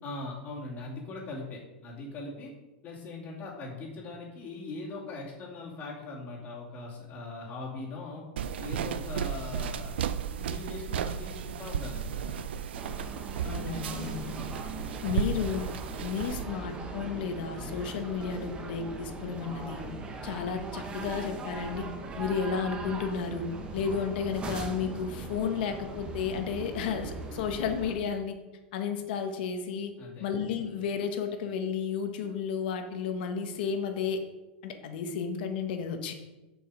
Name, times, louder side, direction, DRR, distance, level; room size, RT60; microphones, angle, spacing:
voice 1, 0.0-2.5 2.8-8.2 8.6-12.3 30.0-30.3, left 3 dB, 30° left, -3 dB, 2.6 m, -41 dB
sound 1, 8.4-16.4, right 8 dB, 90° right, 0.5 m, -34 dB
sound 2, 12.7-27.9, right 3 dB, 20° right, 1.1 m, -40 dB
voice 2, 13.4-14.4 15.0-15.7 16.0-19.8 20.2-21.9 22.2-23.5 23.7-28.4 28.7-29.9 30.2-34.2 34.6-36.1, left 6 dB, 65° left, 6 dB, 1.3 m, -32 dB
7.5 x 5.4 x 5.1 m, 1.1 s
supercardioid pair, 145°, 6 cm